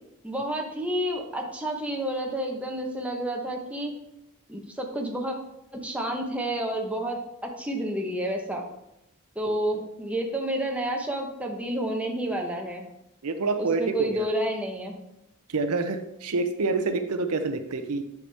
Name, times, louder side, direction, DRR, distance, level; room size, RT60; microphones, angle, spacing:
voice 1, 0.2-3.9 4.5-5.4 5.7-8.6 9.4-12.8 13.6-14.9, right 1 dB, 5° right, 1 dB, 0.9 m, -30 dB
voice 2, 13.2-14.3 15.5-18.0, right 3 dB, 75° right, 8 dB, 0.7 m, -27 dB
9.8 x 5.8 x 3.4 m, 0.87 s
head